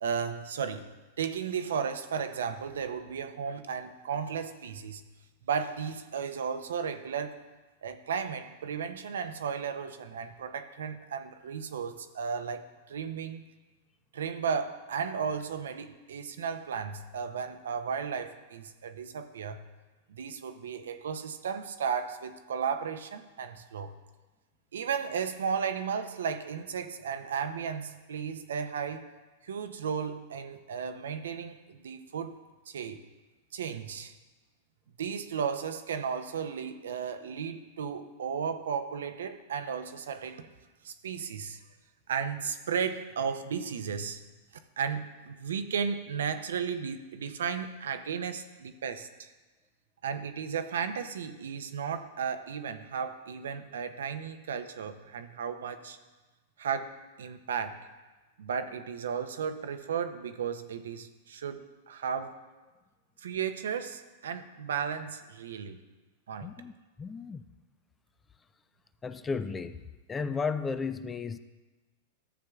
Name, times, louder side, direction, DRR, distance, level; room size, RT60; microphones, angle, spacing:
voice 1, 0.0-0.9 1.2-5.1 5.5-7.4 7.8-13.5 14.1-19.6 20.1-23.9 24.7-29.1 29.4-32.4 32.7-33.0 33.5-34.1 35.0-40.5 40.8-41.6 42.1-44.2 44.8-49.3 50.0-56.0 56.6-57.8 58.4-62.3 63.2-65.8 66.3-66.5, right 6 dB, 75° right, 9 dB, 0.6 m, -34 dB
voice 2, 66.4-66.7 67.0-67.4 69.0-69.8 70.1-71.4, left 5 dB, 20° left, 12 dB, 0.4 m, -33 dB
13.5 x 7.3 x 2.4 m, 1.2 s
hypercardioid pair, 105°, 0 cm